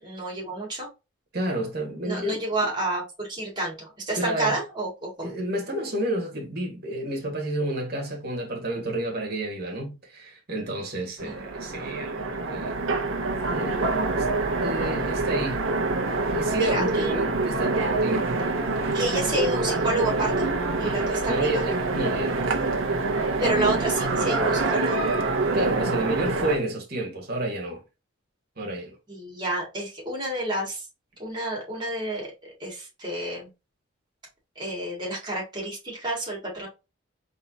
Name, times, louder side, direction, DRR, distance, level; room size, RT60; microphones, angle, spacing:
voice 1, 0.0-0.9 2.0-5.3 11.2-11.4 16.5-17.2 18.9-20.5 20.8-21.7 23.4-25.0 29.1-30.9 31.2-33.5 34.6-36.7, right 1 dB, 20° right, 2.2 m, -30 dB
voice 2, 1.3-2.7 4.1-4.6 5.2-12.8 13.5-14.3 14.6-15.7 16.3-18.3 20.8-22.6 25.5-27.8 28.6-29.0, right 1 dB, 50° right, 1.7 m, -30 dB
Train, 11.2-26.6, right 3 dB, 75° right, 0.9 m, -26 dB
4.1 x 3.7 x 2.8 m
head